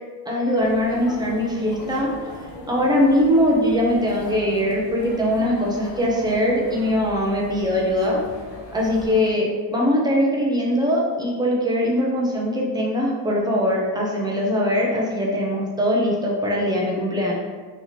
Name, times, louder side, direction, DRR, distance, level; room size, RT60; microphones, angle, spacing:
voice 1, 0.3-2.1 2.7-8.2 8.7-17.3, equal, 10° right, -3 dB, 0.4 m, -21 dB
sound 1, 0.5-9.3, left 2 dB, 45° left, 0.8 m, -39 dB
3.0 x 2.8 x 3.9 m, 1.4 s
cardioid pair, 165°, 48 cm